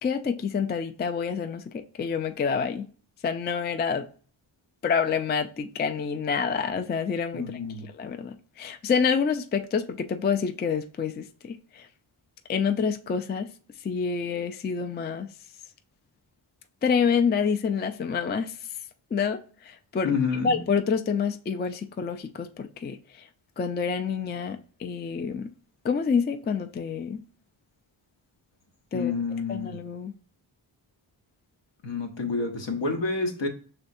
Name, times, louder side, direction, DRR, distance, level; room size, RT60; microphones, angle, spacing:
voice 1, 0.0-2.9 3.2-4.1 4.8-11.9 12.5-13.5 13.8-15.3 16.8-18.7 19.1-20.2 20.4-23.3 23.6-25.5 25.8-27.2 28.9-30.1, left 6 dB, 25° left, 0.3 m, -28 dB
voice 2, 7.3-7.9 20.0-20.5 28.9-29.8 31.8-33.5, left 4 dB, 60° left, 1.1 m, -28 dB
5.1 x 3.3 x 2.6 m
cardioid pair, 45°, 49 cm